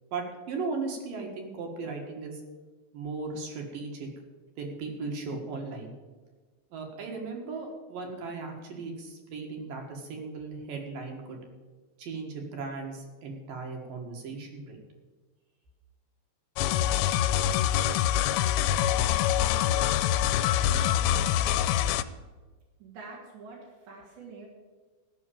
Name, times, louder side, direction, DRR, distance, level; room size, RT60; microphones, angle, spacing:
voice 1, 0.1-2.4 2.9-4.1 4.6-5.9 6.7-11.4 12.0-14.8, right 4 dB, 60° right, 2 dB, 3.0 m, -37 dB
sound 1, 16.6-22.0, left 11 dB, 85° left, 2.7 m, -25 dB
voice 2, 20.7-21.6 22.8-24.5, right 4 dB, 80° right, -3 dB, 4.4 m, -47 dB
14.5 x 6.4 x 8.7 m, 1.3 s
omnidirectional pair, 5.0 m